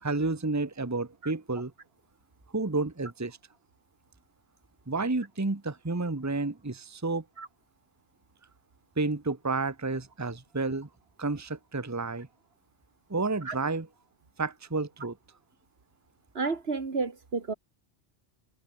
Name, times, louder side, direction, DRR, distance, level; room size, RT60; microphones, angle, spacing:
voice 1, 0.0-1.7 2.5-3.4 4.9-7.2 9.0-10.9 11.2-12.3 13.1-13.9 14.4-15.2, right 3 dB, 15° right, 1.2 m, -30 dB
voice 2, 16.4-17.5, right 4 dB, 75° right, 2.2 m, -31 dB
omnidirectional pair, 1.1 m